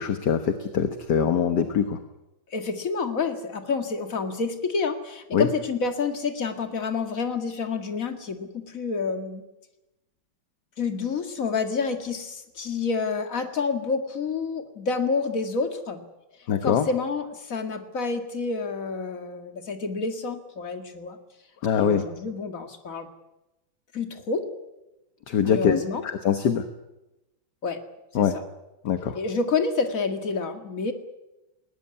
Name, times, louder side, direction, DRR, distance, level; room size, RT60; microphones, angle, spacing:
voice 1, 0.0-2.0 5.3-5.5 16.5-16.9 21.6-22.0 25.3-26.7 28.1-28.3 28.8-29.2, left 7 dB, 60° left, 8 dB, 1.8 m, -23 dB
voice 2, 2.5-9.4 10.8-16.0 16.6-21.2 21.7-23.1 23.9-24.4 25.4-26.0 27.6-27.8 28.1-28.4 29.1-30.9, left 4 dB, 45° left, 7 dB, 2.4 m, -28 dB
20.0 x 19.0 x 9.9 m, 0.97 s
omnidirectional pair, 2.2 m